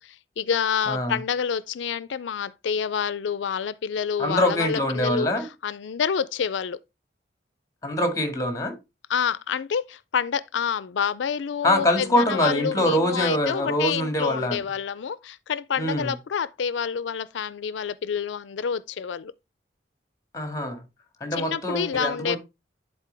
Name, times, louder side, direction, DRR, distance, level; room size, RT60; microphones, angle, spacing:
voice 1, 0.0-5.3 5.6-6.8 9.1-19.3 21.3-22.4, left 7 dB, 80° left, 0.4 m, -28 dB
voice 2, 0.9-1.2 4.2-5.5 7.8-8.8 11.6-14.6 15.8-16.1 20.3-20.8 21.2-22.4, left 1 dB, 20° left, 2.0 m, -24 dB
10.5 x 4.3 x 3.4 m
head